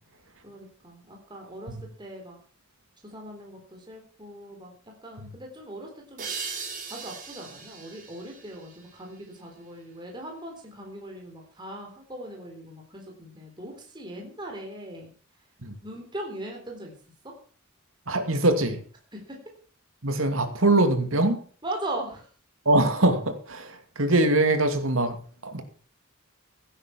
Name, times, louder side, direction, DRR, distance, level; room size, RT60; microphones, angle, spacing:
voice 1, 0.4-2.4 3.0-6.3 6.8-15.1 15.8-17.0 17.2-17.3 19.1-19.4 21.6-22.3, right 1 dB, 20° right, 3.8 m, -39 dB
sound 1, 6.2-9.6, right 5 dB, 40° right, 4.9 m, -39 dB
voice 2, 18.1-18.8 20.0-21.4 22.7-25.6, right 2 dB, 70° right, 2.6 m, -23 dB
16.0 x 9.9 x 6.0 m
head